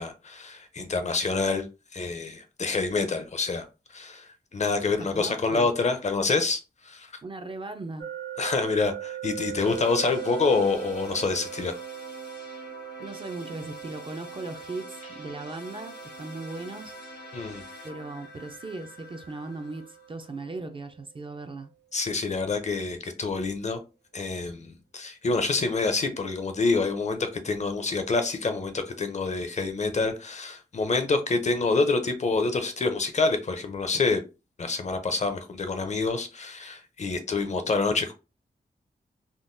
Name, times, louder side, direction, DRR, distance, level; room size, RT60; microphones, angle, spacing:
voice 1, 0.0-1.7 1.9-3.7 3.9-7.1 8.4-11.8 17.3-17.6 21.9-23.8 24.1-34.2 34.6-38.1, left 3 dB, 40° left, 0.5 m, -27 dB
voice 2, 5.0-5.7 7.2-8.1 13.0-17.0 17.8-21.7, right 3 dB, 30° right, 0.3 m, -38 dB
sound 1, 8.0-20.9, right 12 dB, 85° right, 0.6 m, -41 dB
sound 2, 9.6-20.4, left 1 dB, 75° left, 1.1 m, -46 dB
3.6 x 2.2 x 2.5 m
wide cardioid pair, 125°, 17 cm